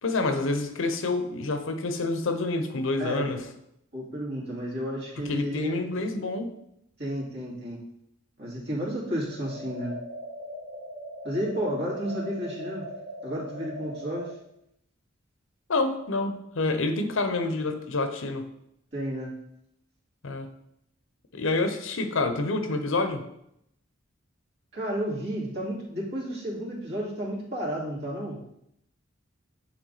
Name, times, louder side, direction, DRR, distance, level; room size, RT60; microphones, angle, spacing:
voice 1, 0.0-3.5 5.2-6.5 15.7-18.5 20.2-20.5 21.3-23.2, left 2 dB, 70° left, 8 dB, 0.7 m, -28 dB
voice 2, 3.0-3.3 3.9-5.8 7.0-7.8 8.4-9.9 11.2-12.9 13.2-14.3 18.9-19.3 24.7-28.4, equal, 55° right, -5 dB, 2.4 m, -32 dB
sound 1, 9.3-14.3, equal, 80° right, 0.9 m, -40 dB
9.2 x 3.5 x 4.0 m, 0.77 s
head